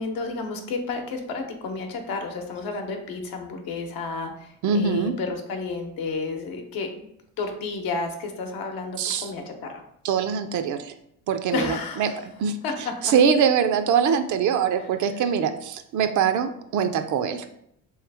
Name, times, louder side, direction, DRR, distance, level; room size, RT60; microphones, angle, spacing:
voice 1, 0.0-7.1 7.4-9.7 11.5-12.2 12.6-13.1, left 4 dB, 70° left, 4 dB, 0.8 m, -31 dB
voice 2, 4.6-5.1 9.0-9.3 10.0-10.9 11.3-11.7 12.0-12.1 12.4-17.5, right 7 dB, 55° right, 9 dB, 0.5 m, -23 dB
3.2 x 3.1 x 3.4 m, 0.73 s
supercardioid pair, 90°, 37 cm